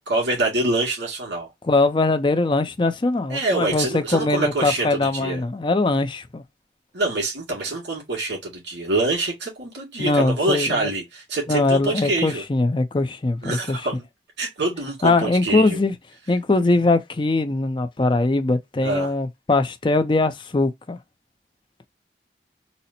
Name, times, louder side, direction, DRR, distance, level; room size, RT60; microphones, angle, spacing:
voice 1, 0.1-1.5 3.3-5.4 6.9-12.4 13.4-14.0 14.4-15.8 18.8-19.1, right 2 dB, 80° right, 2.1 m, -25 dB
voice 2, 1.6-6.4 10.0-10.9 11.5-13.8 15.0-15.9 16.3-21.0, left 2 dB, 25° left, 0.4 m, -21 dB
4.1 x 2.1 x 2.7 m
head